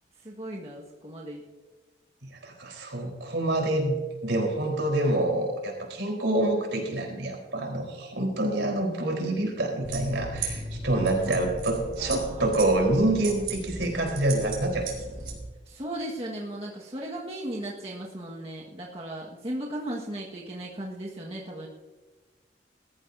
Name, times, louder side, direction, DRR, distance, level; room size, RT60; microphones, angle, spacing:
voice 1, 0.2-1.4 10.9-11.5 12.0-12.5 15.7-21.7, right 1 dB, 35° right, -4 dB, 1.7 m, -36 dB
voice 2, 2.4-14.9, right 1 dB, 85° right, 1 dB, 4.3 m, -27 dB
sound 1, 9.8-15.4, right 3 dB, 60° right, 3.9 m, -36 dB
20.5 x 14.0 x 2.8 m, 1.3 s
head